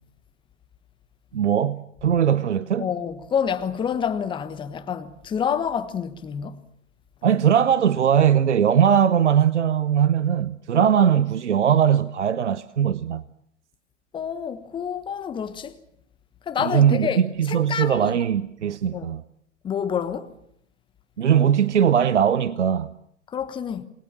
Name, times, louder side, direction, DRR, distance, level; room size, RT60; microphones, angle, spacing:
voice 1, 1.3-2.9 7.2-13.2 16.6-19.2 21.2-22.9, right 8 dB, 65° right, 0.9 m, -20 dB
voice 2, 2.8-6.6 14.1-15.8 16.5-18.2 18.9-19.1 19.6-20.3 23.3-23.9, left 7 dB, 15° left, 1.2 m, -28 dB
27.5 x 20.5 x 7.3 m
figure-of-eight pair, 110°, 38 cm